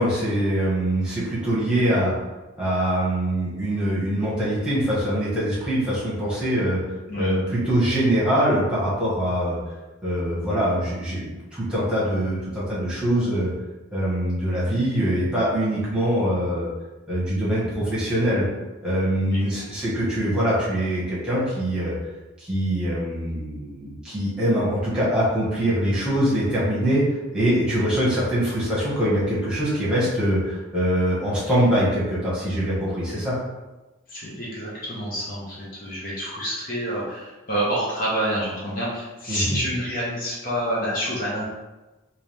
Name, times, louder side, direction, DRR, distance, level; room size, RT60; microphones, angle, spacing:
voice 1, 0.0-2.1 2.6-6.8 7.2-9.6 10.0-13.5 13.9-16.7 17.1-18.5 18.8-22.0 22.4-27.0 27.3-33.4 39.3-39.6, equal, 5° right, -9 dB, 1.4 m, -23 dB
voice 2, 7.1-7.4 19.1-19.2 34.1-41.4, equal, 45° left, -6 dB, 0.9 m, -28 dB
3.8 x 2.8 x 3.4 m, 1.1 s
head